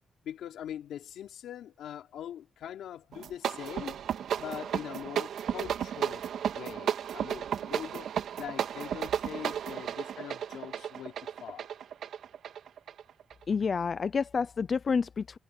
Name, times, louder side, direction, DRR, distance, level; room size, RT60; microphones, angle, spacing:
voice 1, 0.2-4.0 4.3-8.1 8.4-11.1 11.4-11.7, left 10 dB, 85° left, 3.2 m, -42 dB
sound 1, 3.1-13.4, right 9 dB, 75° right, 2.0 m, -34 dB
voice 2, 13.5-15.4, left 5 dB, 45° left, 0.5 m, -29 dB
cardioid pair, 105°, 0 cm